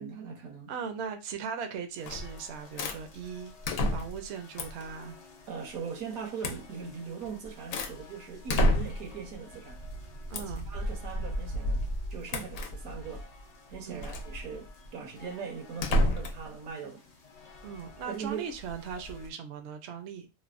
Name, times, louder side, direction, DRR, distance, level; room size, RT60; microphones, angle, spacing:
voice 1, 0.0-0.7 5.5-9.8 10.3-11.8 12.1-13.2 13.7-17.0 18.1-18.5, right 6 dB, 80° right, 1.2 m, -40 dB
voice 2, 0.7-3.5 3.9-5.2 10.3-10.7 13.9-14.1 17.6-20.3, right 6 dB, 65° right, 0.7 m, -39 dB
sound 1, 2.0-19.3, equal, 60° left, 0.4 m, -42 dB
sound 2, 2.1-2.4 2.8-3.0 3.6-4.3 4.6-4.9 6.4-6.6 7.2-8.0 8.5-9.2 10.3-10.6 12.3-12.7 14.0-14.3 15.8-16.4, left 1 dB, 80° left, 1.0 m, -29 dB
3.2 x 2.1 x 2.4 m
omnidirectional pair, 1.5 m